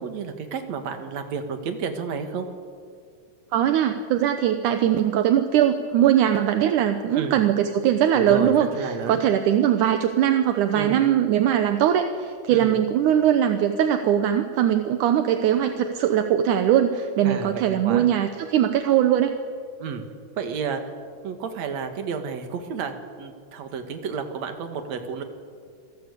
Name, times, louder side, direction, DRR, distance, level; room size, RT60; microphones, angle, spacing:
voice 1, 0.0-2.5 7.1-7.4 8.1-9.2 10.7-11.0 12.5-12.8 17.2-18.1 19.8-20.0 20.4-20.8 21.2-25.2, right 6 dB, 50° right, 6 dB, 2.7 m, -31 dB
voice 2, 3.5-19.3, right 10 dB, 70° right, 7 dB, 2.1 m, -21 dB
27.5 x 18.0 x 8.3 m, 2.2 s
omnidirectional pair, 4.4 m